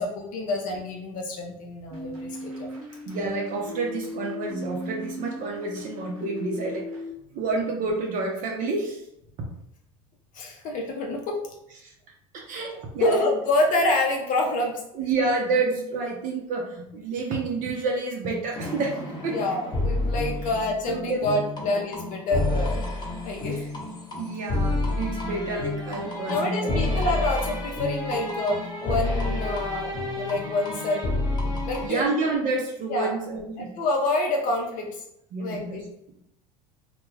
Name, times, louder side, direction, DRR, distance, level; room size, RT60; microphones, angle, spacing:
voice 1, 0.0-2.7 10.3-11.3 12.7-14.8 19.3-22.8 23.2-23.6 26.3-28.6 28.8-31.1 31.6-32.1 32.9-33.1 33.6-34.9 35.4-35.8, left 2 dB, 50° left, 1 dB, 0.6 m, -27 dB
sound 1, 1.9-7.1, left 1 dB, 85° right, 0.8 m, -37 dB
voice 2, 3.1-6.8 7.3-9.0 11.8-11.9 12.3-13.3 14.9-19.0 19.2-19.4 20.9-21.3 21.6-21.7 23.5-23.7 24.1-27.0 31.8-33.7 35.3-35.8, right 3 dB, 50° right, 0 dB, 0.6 m, -29 dB
sound 2, 18.5-31.9, left 2 dB, 25° left, 0.9 m, -29 dB
2.2 x 2.1 x 3.2 m, 0.79 s
hypercardioid pair, 90°, 17 cm